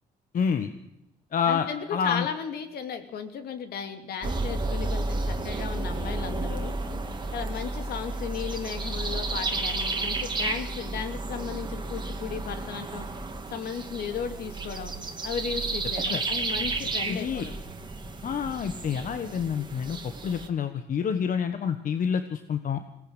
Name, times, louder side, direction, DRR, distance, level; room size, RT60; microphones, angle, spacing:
voice 1, 0.3-0.7 1.3-1.7 1.9-2.3 16.1-16.2 17.1-17.5 18.2-20.0 20.2-22.8, left 7 dB, 55° left, 9 dB, 1.3 m, -28 dB
voice 2, 1.5-6.7 7.3-13.1 13.5-14.9 15.2-17.6, left 7 dB, 70° left, 7 dB, 2.7 m, -35 dB
sound 1, 4.2-20.5, right 3 dB, 25° right, 2.4 m, -32 dB
21.0 x 18.0 x 8.1 m, 0.85 s
cardioid pair, 90°, 17 cm